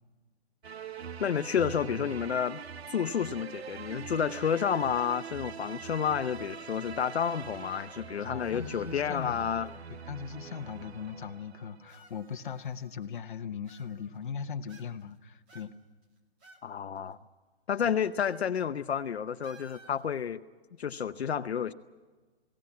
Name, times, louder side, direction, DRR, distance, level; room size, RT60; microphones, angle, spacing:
sound 1, 0.6-12.0, right 7 dB, 75° right, 1.0 m, -43 dB
voice 1, 1.2-2.6 2.9-9.7 16.6-17.2 17.7-20.4 20.8-21.7, left 8 dB, 80° left, 11 dB, 0.8 m, -30 dB
voice 2, 8.3-15.7 17.8-17.9, left 7 dB, 50° left, 8 dB, 1.0 m, -39 dB
sound 2, 8.4-9.8 10.7-10.8 11.9-13.2 13.6-14.3 14.7-15.2 15.5-16.7 17.0-17.1 18.2-18.5 18.8-18.9 19.4-20.1, right 2 dB, 10° right, 0.6 m, -57 dB
21.0 x 17.5 x 8.5 m, 1.3 s
hypercardioid pair, 165°, 32 cm